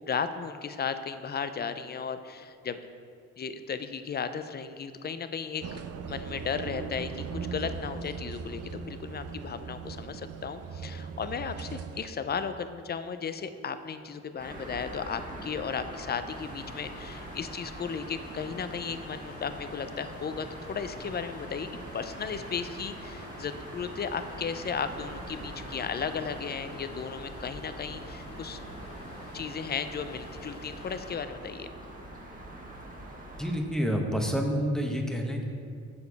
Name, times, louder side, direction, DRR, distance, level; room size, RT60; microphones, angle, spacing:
voice 1, 0.1-2.8 3.4-5.8 6.1-28.6 29.3-31.7, left 6 dB, 35° left, 11 dB, 0.5 m, -35 dB
sound 1, 5.6-12.1, right 5 dB, 55° right, 0.5 m, -39 dB
sound 2, 14.4-33.6, right 1 dB, 25° right, 1.6 m, -43 dB
sound 3, 16.3-31.1, left 2 dB, 50° left, 2.0 m, -49 dB
voice 2, 33.4-35.5, equal, ahead, 1 dB, 1.1 m, -28 dB
7.0 x 6.8 x 4.7 m, 2.3 s
cardioid pair, 90°, 30 cm